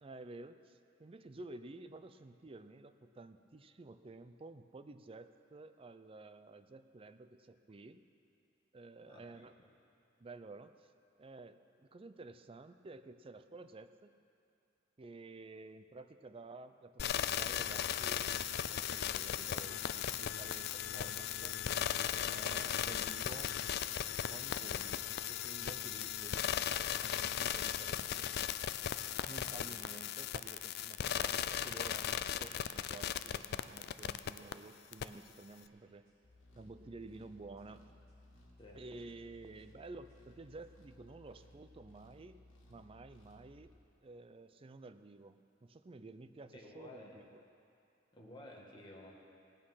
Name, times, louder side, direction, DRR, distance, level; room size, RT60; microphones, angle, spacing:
voice 1, 0.0-8.0 8.7-9.5 10.2-10.9 11.2-14.1 15.0-21.6 22.1-23.5 24.3-28.3 29.3-36.1 36.6-37.8 38.7-42.4 42.7-43.7 44.0-47.4, right 3 dB, 30° right, 11 dB, 0.4 m, -52 dB
voice 2, 9.0-9.7 29.3-29.7 38.6-38.8 46.5-47.2 48.1-49.1, left 1 dB, 25° left, -3 dB, 1.8 m, -54 dB
sound 1, 17.0-34.5 34.9-35.0, left 10 dB, 55° left, 0.4 m, -37 dB
sound 2, 34.8-40.7, equal, 50° right, 3.9 m, -76 dB
sound 3, 36.2-43.8, left 1 dB, 80° left, 1.9 m, -61 dB
17.5 x 8.8 x 5.6 m, 2.6 s
head